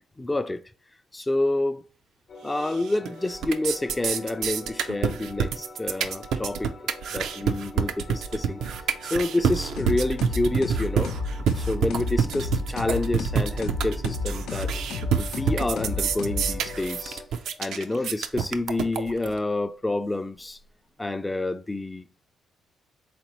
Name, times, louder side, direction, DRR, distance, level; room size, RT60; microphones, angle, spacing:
voice 1, 0.2-0.6 1.1-1.8 2.4-6.7 7.1-8.6 9.1-11.1 11.6-14.8 15.2-17.2 17.6-20.6 21.0-22.2, left 2 dB, 15° left, 0.3 m, -28 dB
sound 1, 2.3-17.3, left 2 dB, 55° left, 0.8 m, -45 dB
sound 2, 2.6-3.1 3.3-19.3, right 7 dB, 75° right, 0.4 m, -27 dB
sound 3, 9.8-16.9, left 3 dB, 80° left, 0.5 m, -32 dB
4.2 x 3.7 x 3.0 m
cardioid pair, 90°, 0 cm